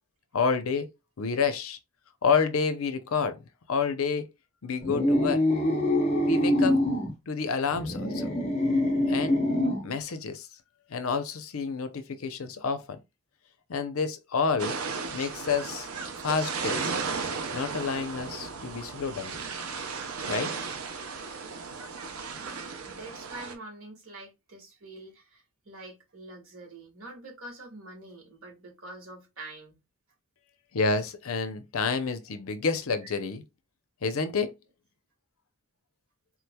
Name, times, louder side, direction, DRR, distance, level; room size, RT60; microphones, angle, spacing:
voice 1, 0.3-0.9 1.2-1.8 2.2-3.4 3.7-4.2 4.6-5.4 6.2-6.8 7.3-8.3 9.1-9.4 9.8-10.5 10.9-13.0 13.7-14.8 15.1-15.9 16.2-16.9 17.5-19.4 20.3-20.5 30.7-33.4 34.0-34.5, left 5 dB, 70° left, 0.6 m, -29 dB
sound 1, 4.8-7.1 7.7-9.9, left 1 dB, 30° left, 0.7 m, -25 dB
sound 2, 14.6-23.6, right 5 dB, 85° right, 0.6 m, -35 dB
voice 2, 22.4-29.8 33.0-33.1, right 2 dB, 65° right, 1.6 m, -45 dB
3.7 x 3.1 x 2.2 m
head